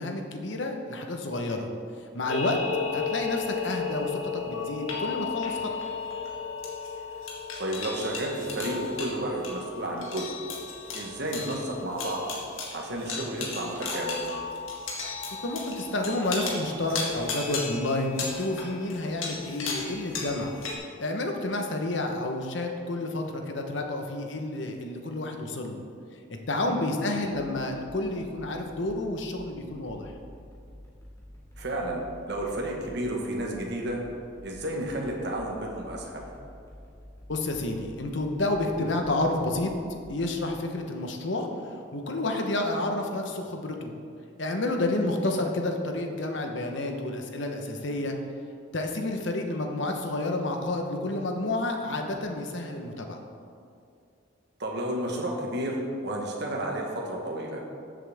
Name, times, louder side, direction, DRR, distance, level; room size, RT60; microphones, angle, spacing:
voice 1, 0.0-1.7 2.1-2.6 2.9-5.7 15.4-20.6 21.0-25.8 26.3-30.2 37.3-39.7 40.1-41.5 41.9-43.9 44.4-48.2 48.7-53.2, left 2 dB, 65° left, 3 dB, 1.1 m, -30 dB
sound 1, 2.3-20.7, left 4 dB, 90° left, 1.8 m, -34 dB
voice 2, 7.6-10.3 10.9-12.3 12.7-14.2 26.6-26.8 31.6-34.0 34.4-36.2 44.9-45.1 54.6-57.6, right 1 dB, 55° right, 0 dB, 1.4 m, -32 dB
sound 2, 27.3-40.5, equal, 15° left, 2.1 m, -50 dB
14.0 x 7.6 x 3.6 m, 2.4 s
head